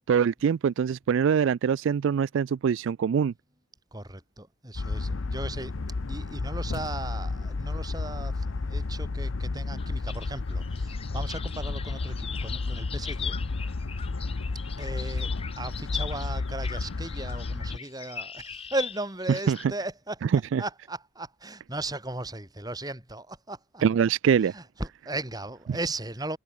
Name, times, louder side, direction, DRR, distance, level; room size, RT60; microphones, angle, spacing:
voice 1, 0.1-3.3 19.5-19.6 20.2-20.6 23.8-24.5, right 7 dB, 70° right, 0.3 m, -23 dB
voice 2, 3.9-5.7 6.1-13.4 14.8-20.2 20.6-23.8 24.5-26.4, right 2 dB, 20° right, 4.3 m, -36 dB
sound 1, 4.7-17.8, left 3 dB, 80° left, 0.7 m, -32 dB
sound 2, 9.8-19.6, left 7 dB, 30° left, 1.6 m, -41 dB
head